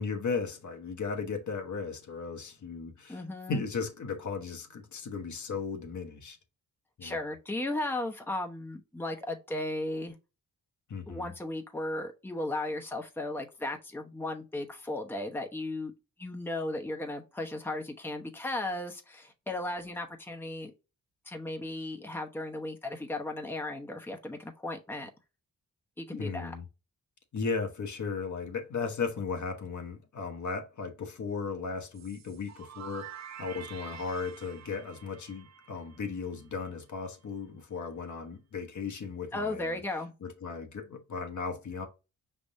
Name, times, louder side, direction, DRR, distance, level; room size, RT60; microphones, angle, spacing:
voice 1, 0.0-3.2 3.5-6.4 7.0-7.2 10.9-11.3 26.1-26.7 27.3-39.8 40.2-41.9, left 5 dB, 55° left, 1.1 m, -36 dB
voice 2, 3.1-3.6 7.0-10.1 11.1-15.9 16.2-20.7 21.3-25.1 26.0-26.5 39.3-40.1, left 2 dB, 5° left, 0.9 m, -35 dB
sound 1, 31.9-36.7, right 8 dB, 50° right, 0.5 m, -48 dB
5.0 x 3.6 x 2.6 m
cardioid pair, 60°, 34 cm